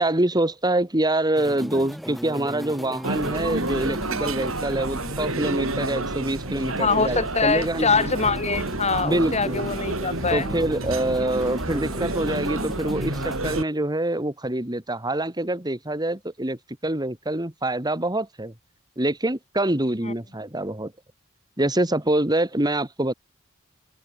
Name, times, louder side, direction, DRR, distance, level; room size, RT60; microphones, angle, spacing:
voice 1, 0.0-8.1 9.0-9.7 10.3-18.5 19.0-20.9 21.6-23.1, right 1 dB, 20° right, 2.9 m, -25 dB
sound 1, 1.4-13.6, equal, ahead, 6.2 m, -38 dB
sound 2, 3.0-13.6, right 2 dB, 75° right, 7.2 m, -30 dB
voice 2, 6.8-10.5 20.0-20.1, left 4 dB, 30° left, 4.5 m, -24 dB
head